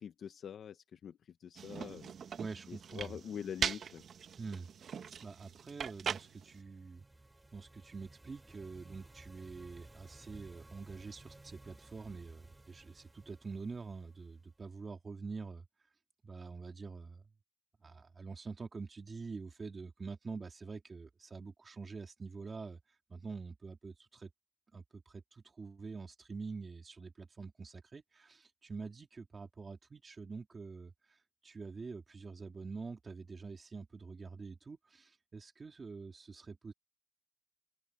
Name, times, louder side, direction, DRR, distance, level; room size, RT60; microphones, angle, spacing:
voice 1, 0.0-2.1 2.7-4.0, left 8 dB, 80° left, 0.7 m, -45 dB
sound 1, 1.6-6.6, right 7 dB, 65° right, 0.9 m, -41 dB
voice 2, 2.4-3.1 4.4-7.0 7.5-15.6 16.2-17.2 17.8-22.8 23.1-24.3 24.7-36.7, right 4 dB, 35° right, 2.5 m, -46 dB
sound 2, 6.0-14.8, right 2 dB, 15° right, 2.1 m, -58 dB
open air
wide cardioid pair, 160°, 0 cm